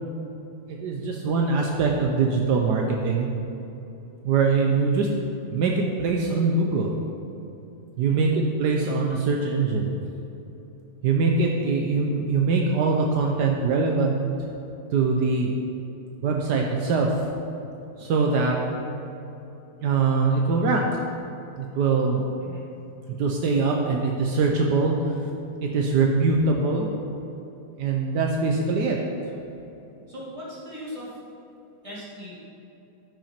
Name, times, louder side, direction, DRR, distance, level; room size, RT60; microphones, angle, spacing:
voice 1, 0.7-3.3 4.2-5.1 5.5-6.9 8.0-9.9 11.0-14.1 14.9-15.5 16.2-17.2 18.0-18.6 19.8-21.0 21.6-22.2 23.2-24.9 25.7-26.9 27.8-29.0, right 4 dB, 75° right, 0 dB, 1.3 m, -22 dB
voice 2, 30.1-31.1 31.8-32.3, equal, 20° right, -8 dB, 2.6 m, -39 dB
13.5 x 6.0 x 4.4 m, 3.0 s
omnidirectional pair, 1.9 m